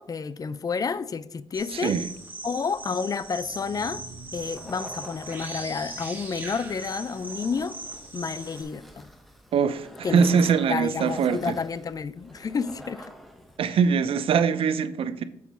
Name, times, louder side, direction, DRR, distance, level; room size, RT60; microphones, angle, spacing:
voice 1, 0.0-2.0 2.4-4.0 4.3-7.8 8.1-9.1 10.0-10.2 10.7-13.1 13.7-13.8, left 5 dB, 40° left, 0.4 m, -30 dB
sound 1, 1.5-8.6, right 2 dB, 20° right, 2.1 m, -39 dB
voice 2, 1.7-2.1 9.5-11.6 13.6-15.2, right 6 dB, 75° right, 0.6 m, -23 dB
sound 2, 3.2-9.1, right 3 dB, 40° right, 1.7 m, -51 dB
sound 3, 4.4-13.7, equal, ahead, 0.9 m, -48 dB
7.1 x 4.0 x 6.0 m
cardioid pair, 100°, 10 cm